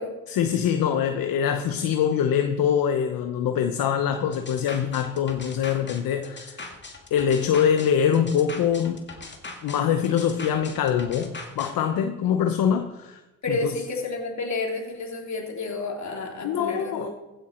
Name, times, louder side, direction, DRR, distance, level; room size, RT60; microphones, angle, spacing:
voice 1, 0.3-6.6 7.1-9.1 9.6-13.2 13.5-13.7 16.4-17.1, left 8 dB, 70° left, 7 dB, 1.0 m, -24 dB
sound 1, 4.3-11.7, left 3 dB, 30° left, 2.4 m, -40 dB
voice 2, 13.4-17.1, left 3 dB, 50° left, 0 dB, 3.4 m, -30 dB
15.5 x 9.3 x 4.4 m, 1.1 s
supercardioid pair, 70°, 36 cm